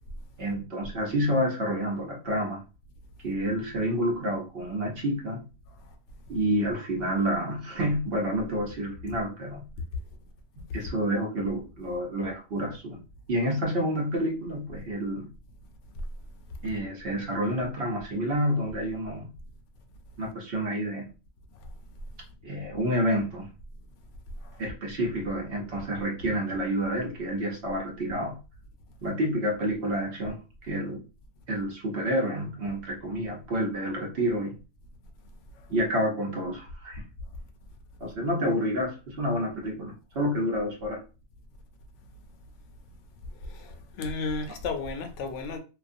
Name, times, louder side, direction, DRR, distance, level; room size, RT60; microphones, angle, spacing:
voice 1, 0.4-2.6 3.2-5.4 6.3-9.7 10.6-13.0 13.3-15.3 16.6-19.3 20.2-21.1 22.4-23.5 24.6-28.4 29.0-31.0 31.5-34.6 35.7-37.0 38.0-41.0, equal, 50° right, 0.9 m, -29 dB
voice 2, 43.5-45.6, left 4 dB, 70° left, 0.8 m, -33 dB
2.4 x 2.3 x 2.5 m
omnidirectional pair, 1.4 m